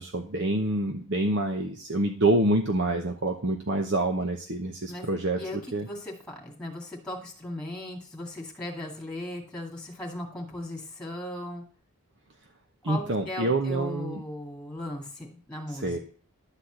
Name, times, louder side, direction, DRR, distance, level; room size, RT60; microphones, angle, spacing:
voice 1, 0.0-5.4 5.7-5.9 12.8-14.2 15.7-16.0, right 2 dB, 50° right, 4 dB, 0.8 m, -27 dB
voice 2, 5.4-11.6 12.8-16.0, left 1 dB, 5° left, -1 dB, 2.1 m, -37 dB
11.5 x 4.2 x 7.9 m, 0.43 s
head